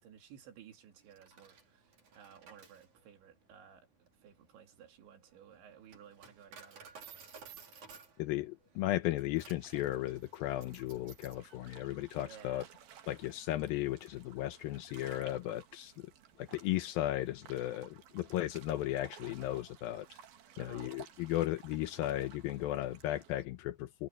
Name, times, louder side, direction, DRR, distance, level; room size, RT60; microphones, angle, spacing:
voice 1, 0.0-3.9 4.2-7.0 12.1-12.7 20.6-20.9, right 8 dB, 75° right, 5.0 m, -56 dB
Coin (dropping), 1.0-11.5, right 6 dB, 45° right, 4.8 m, -56 dB
voice 2, 8.2-12.6 13.1-16.1 16.4-20.1 20.6-24.1, left 14 dB, 80° left, 2.1 m, -35 dB
sound 1, 9.6-23.5, right 9 dB, 60° right, 3.4 m, -57 dB
omnidirectional pair, 5.3 m